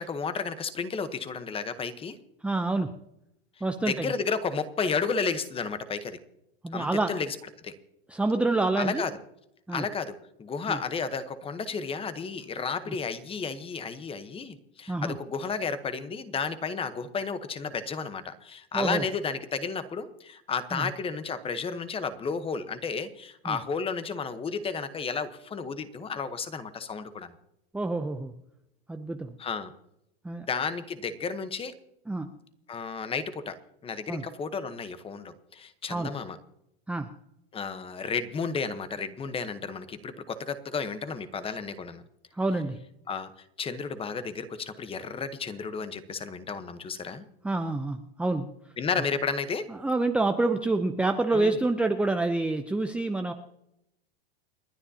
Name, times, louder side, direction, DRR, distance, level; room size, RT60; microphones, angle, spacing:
voice 1, 0.0-2.2 3.9-6.2 6.7-7.4 7.6-7.8 8.8-9.1 9.7-27.3 29.4-29.7 30.4-31.7 32.7-33.6 33.8-36.4 37.5-42.0 43.1-43.3 43.6-47.2 48.8-49.7 51.3-51.6, left 5 dB, 20° left, 12 dB, 1.0 m, -32 dB
voice 2, 2.4-2.9 3.6-4.1 6.6-7.1 8.1-9.0 9.7-9.8 10.7-10.8 14.9-15.1 18.7-19.0 20.7-20.9 23.5-23.6 27.7-28.3 28.9-29.3 30.2-30.5 32.1-32.3 34.1-34.2 35.9-36.1 36.9-37.1 42.3-42.8 47.4-48.5 49.7-53.3, right 2 dB, 5° right, 5 dB, 0.6 m, -27 dB
29.5 x 10.0 x 2.8 m, 0.82 s
supercardioid pair, 125°, 30 cm